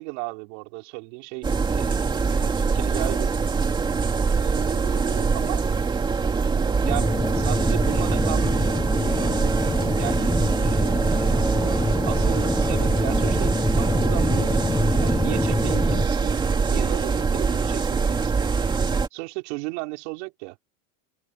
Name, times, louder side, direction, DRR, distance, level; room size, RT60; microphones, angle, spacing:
voice 1, 0.0-3.3 4.3-5.6 6.8-8.9 10.0-10.3 10.6-14.5 15.0-18.5 19.1-20.6, right 27 dB, 60° right, 5.2 m, -35 dB
sound 1, 1.4-19.1, right 5 dB, 10° right, 2.8 m, -23 dB
sound 2, 6.8-16.1, left 2 dB, 5° left, 0.9 m, -26 dB
cardioid pair, 180°, 39 cm